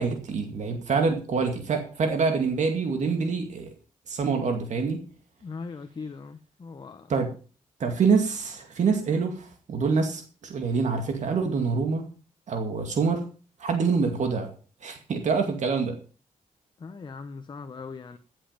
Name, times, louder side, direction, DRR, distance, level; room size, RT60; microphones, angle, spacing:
voice 1, 0.0-3.7 4.1-5.0 7.1-7.3 7.8-12.0 12.5-13.2 13.6-14.5 14.8-15.9, right 5 dB, 60° right, 4 dB, 2.2 m, -26 dB
voice 2, 5.4-7.1 16.8-18.2, left 4 dB, 35° left, 9 dB, 0.9 m, -39 dB
16.0 x 7.6 x 5.2 m, 0.38 s
wide cardioid pair, 140°, 14 cm